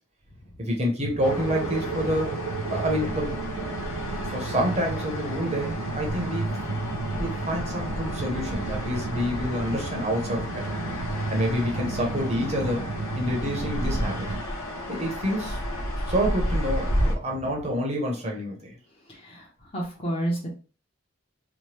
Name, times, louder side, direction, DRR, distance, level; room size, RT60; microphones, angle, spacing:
voice 1, 0.6-2.4 2.7-3.3 4.3-6.8 7.1-10.8 11.1-14.3 14.9-15.6 16.1-18.8, equal, 30° right, 0 dB, 0.7 m, -28 dB
sound 1, 1.0-14.4, right 4 dB, 70° right, 0.3 m, -33 dB
sound 2, 1.2-17.2, equal, 85° left, 0.8 m, -32 dB
voice 2, 19.7-20.5, right 1 dB, 30° left, -2 dB, 0.9 m, -28 dB
2.9 x 2.1 x 3.2 m, 0.35 s
head